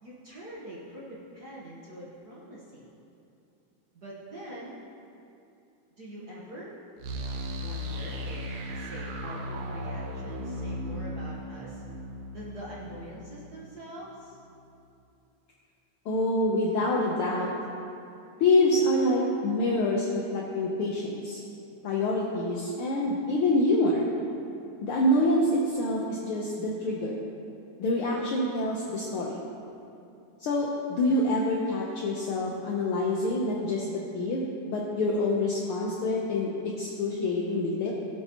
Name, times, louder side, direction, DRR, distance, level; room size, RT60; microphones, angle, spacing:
voice 1, 0.0-2.9 3.9-4.8 6.0-6.7 7.5-8.5 8.7-11.8 12.3-14.4, right 1 dB, 50° right, -6 dB, 1.1 m, -44 dB
sound 1, 7.0-13.8, equal, 70° right, 2.0 m, -36 dB
voice 2, 16.0-17.5 18.4-21.4 21.8-24.1 24.8-27.2 27.8-29.4 30.4-37.9, left 1 dB, 70° left, -3 dB, 1.4 m, -26 dB
17.5 x 8.3 x 3.0 m, 2.7 s
omnidirectional pair, 3.4 m